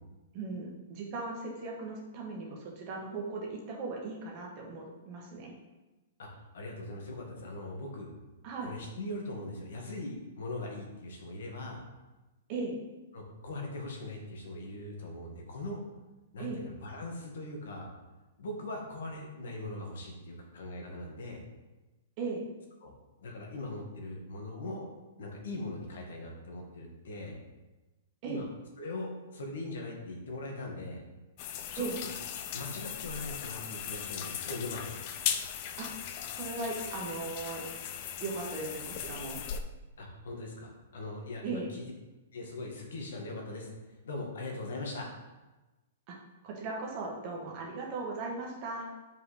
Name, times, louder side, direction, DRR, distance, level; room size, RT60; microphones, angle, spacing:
voice 1, 0.3-5.6 8.4-8.7 12.5-12.8 16.4-16.6 22.2-22.4 28.2-28.4 31.8-32.0 35.8-35.9 36.3-37.6 38.2-39.4 41.4-41.7 46.1-46.2 46.4-48.9, right 3 dB, 30° right, -1 dB, 1.3 m, -38 dB
voice 2, 6.2-8.1 8.6-11.8 13.1-15.8 16.3-17.9 18.4-21.4 22.8-22.9 23.2-24.9 25.2-27.4 28.3-28.4 28.8-31.0 31.7-32.1 32.5-35.1 40.0-41.9 42.3-43.7 44.0-45.1, left 2 dB, 75° left, 0 dB, 1.8 m, -40 dB
sound 1, 31.4-39.6, left 9 dB, 35° left, 0.4 m, -38 dB
7.7 x 5.3 x 3.4 m, 1.1 s
hypercardioid pair, 170°, 0 cm